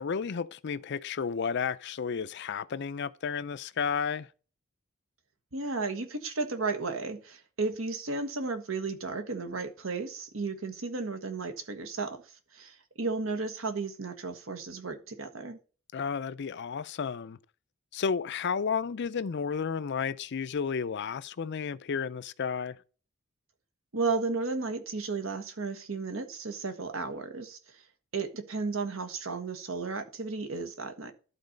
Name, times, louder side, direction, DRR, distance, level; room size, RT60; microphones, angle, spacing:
voice 1, 0.0-4.3 15.9-17.4 17.9-22.8, left 6 dB, 55° left, 0.5 m, -32 dB
voice 2, 5.5-12.2 12.5-15.6 23.9-27.8 28.1-31.1, right 3 dB, 75° right, 1.3 m, -34 dB
12.0 x 4.1 x 5.1 m
head